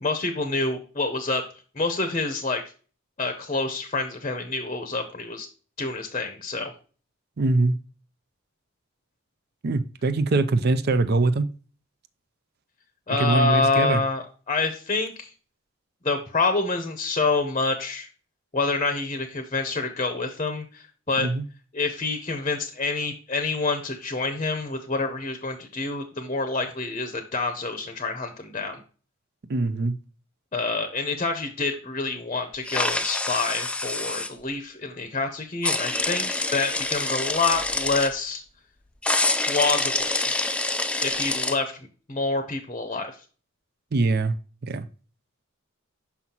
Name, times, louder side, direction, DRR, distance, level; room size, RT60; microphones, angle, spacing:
voice 1, 0.0-1.4 1.7-2.6 3.2-5.5 5.8-6.7 13.1-15.3 16.0-18.1 18.5-21.3 21.7-28.8 30.5-38.4 39.5-40.3 41.0-41.8 42.1-43.1, left 3 dB, 30° left, 0.7 m, -27 dB
voice 2, 7.4-7.8 9.6-11.5 13.2-14.0 21.2-21.4 29.5-29.9 43.9-44.3 44.6-44.8, right 3 dB, 50° right, 0.5 m, -22 dB
sound 1, 32.6-34.3 35.6-38.1 39.0-41.6, left 2 dB, 5° left, 0.3 m, -26 dB
5.9 x 5.6 x 2.9 m
head